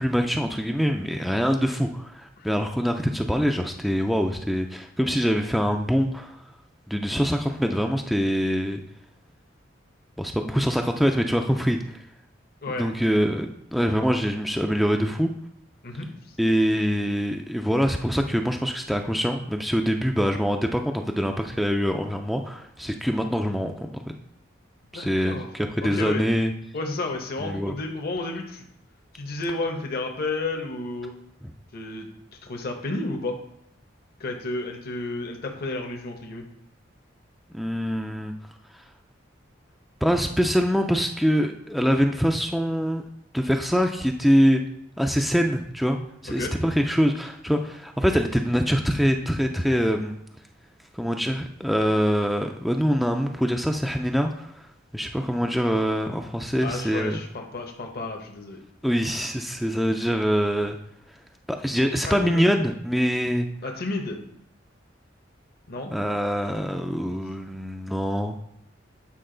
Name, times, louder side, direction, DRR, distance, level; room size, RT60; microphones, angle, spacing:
voice 1, 0.0-6.4 6.9-8.8 10.2-12.0 12.7-15.3 16.4-24.1 24.9-26.5 27.4-27.7 37.5-38.3 40.0-43.0 43.3-44.6 45.0-46.0 46.2-50.2 50.9-54.7 54.9-57.2 58.8-60.8 61.5-63.5 65.9-68.4, equal, ahead, 3 dB, 0.3 m, -24 dB
voice 2, 15.8-16.4 24.9-25.5 25.8-26.2 26.7-28.7 29.1-31.1 31.7-32.1 32.4-33.4 34.2-36.4 46.4-46.5 56.6-58.6 62.0-62.5 63.6-64.2 65.7-65.9, left 2 dB, 55° left, 3 dB, 0.9 m, -31 dB
8.6 x 4.7 x 3.8 m, 0.74 s
head